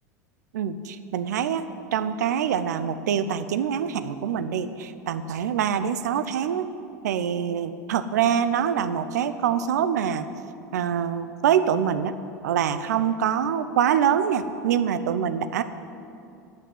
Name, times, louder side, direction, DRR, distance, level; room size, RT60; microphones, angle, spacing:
voice 1, 0.5-1.6 1.9-6.7 7.0-10.3 10.7-12.1 12.4-15.6, right 8 dB, 75° right, 11 dB, 0.7 m, -25 dB
10.0 x 8.5 x 9.4 m, 2.6 s
hypercardioid pair, 85°, 9 cm